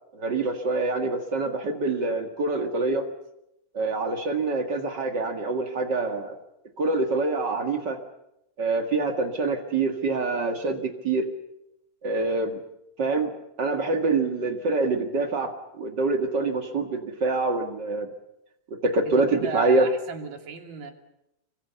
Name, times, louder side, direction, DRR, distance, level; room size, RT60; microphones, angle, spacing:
voice 1, 0.1-3.0 3.7-6.3 6.8-8.0 8.6-11.3 12.0-12.6 13.0-13.3 13.6-15.5 15.8-18.1 18.8-19.9, right 3 dB, 80° right, 4 dB, 0.9 m, -25 dB
voice 2, 19.1-20.9, right 5 dB, 50° right, 4 dB, 4.1 m, -36 dB
27.0 x 25.0 x 7.0 m, 0.83 s
omnidirectional pair, 5.3 m